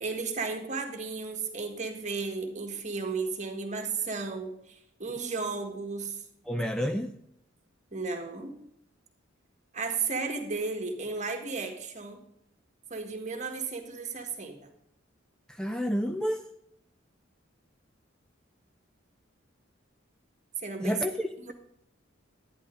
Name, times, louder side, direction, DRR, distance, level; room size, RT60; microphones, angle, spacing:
voice 1, 0.0-6.2 7.9-8.6 9.7-12.2 12.9-14.7 20.6-21.0 21.4-21.5, right 4 dB, 40° right, 4 dB, 1.5 m, -34 dB
voice 2, 6.5-7.2 15.5-16.4 20.8-21.5, equal, 5° left, 6 dB, 0.4 m, -30 dB
11.0 x 9.8 x 3.8 m, 0.75 s
head